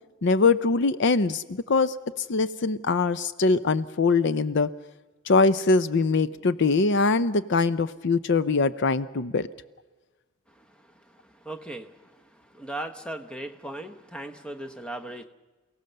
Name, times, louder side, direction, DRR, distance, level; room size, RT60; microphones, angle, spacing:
voice 1, 0.2-1.9 2.3-4.7 5.3-9.5, left 3 dB, 60° left, 14 dB, 0.6 m, -22 dB
voice 2, 11.5-11.9 12.6-15.2, right 1 dB, 5° left, 7 dB, 1.1 m, -37 dB
28.5 x 17.5 x 6.8 m, 1.2 s
head